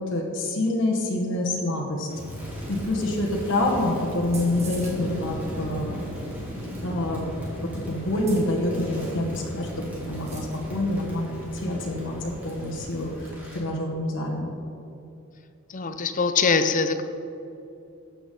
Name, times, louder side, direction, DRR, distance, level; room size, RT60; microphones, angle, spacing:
voice 1, 0.0-2.1 2.7-5.9 6.8-7.2 7.6-12.2 12.4-14.5, left 1 dB, 55° left, -2 dB, 1.8 m, -27 dB
Crackle, 2.1-13.7, equal, 10° right, 2.9 m, -36 dB
sound 1, 4.2-5.0 6.3-7.0 8.1-10.8 11.2-11.3 11.5-11.6 12.5-12.7 13.0-13.3, right 3 dB, 30° right, 2.0 m, -46 dB
voice 2, 15.7-17.0, left 5 dB, 35° left, 9 dB, 0.6 m, -23 dB
14.5 x 8.7 x 3.9 m, 2.8 s
head